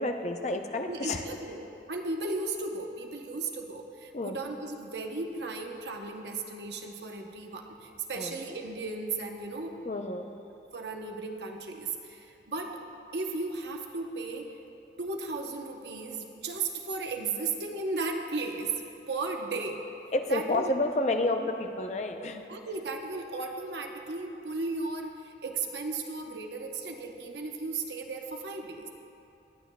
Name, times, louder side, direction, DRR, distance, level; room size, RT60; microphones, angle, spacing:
voice 1, 0.0-1.2 4.1-4.4 8.1-8.4 9.8-10.3 20.1-22.4, left 2 dB, 40° left, 5 dB, 0.5 m, -30 dB
voice 2, 0.9-9.7 10.7-12.8 13.1-14.5 15.0-18.7 19.1-19.8 20.3-20.7 22.2-28.9, right 3 dB, 80° right, 3 dB, 0.9 m, -35 dB
19.5 x 8.8 x 2.3 m, 2.8 s
head